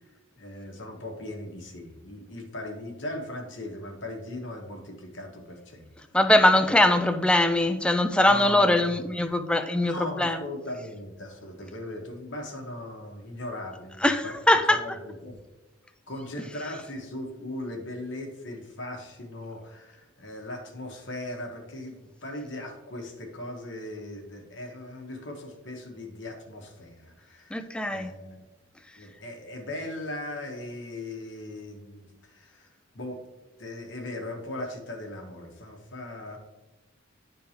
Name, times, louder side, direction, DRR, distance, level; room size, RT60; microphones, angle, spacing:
voice 1, 0.4-5.9 6.6-6.8 8.3-9.0 9.8-14.3 14.7-15.4 16.1-28.4 29.0-33.2 33.6-36.4, left 1 dB, 65° left, 2 dB, 1.2 m, -38 dB
voice 2, 6.1-10.4 14.0-14.8 27.5-28.1, left 1 dB, 5° left, 8 dB, 0.3 m, -22 dB
11.0 x 3.7 x 2.8 m, 1.1 s
head